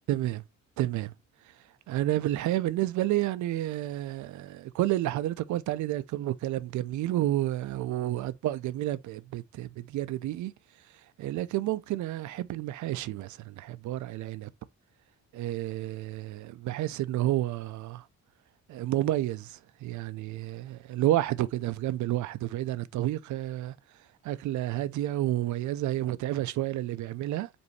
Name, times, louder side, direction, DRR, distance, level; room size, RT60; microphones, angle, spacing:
voice 1, 0.1-0.4 0.8-1.1 1.9-10.5 11.2-14.5 15.3-18.0 18.7-23.7 24.2-27.5, right 14 dB, 75° right, 0.5 m, -30 dB
5.2 x 2.7 x 3.2 m
cardioid pair, 90°, 30 cm